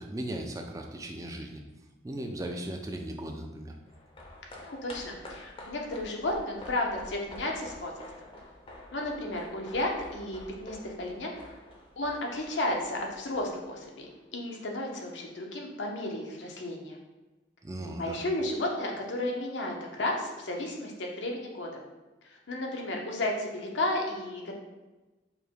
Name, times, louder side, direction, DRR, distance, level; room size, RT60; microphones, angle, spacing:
voice 1, 0.0-1.6 2.0-3.8 17.6-18.2, right 1 dB, 20° right, 3 dB, 0.4 m, -37 dB
sound 1, 3.8-14.4 14.7-14.8, left 1 dB, 30° left, 0.6 m, -48 dB
voice 2, 4.6-7.9 8.9-11.3 12.0-17.0 18.0-21.8 22.5-24.5, left 1 dB, 90° left, 0 dB, 0.8 m, -33 dB
5.2 x 2.2 x 4.5 m, 1.1 s
head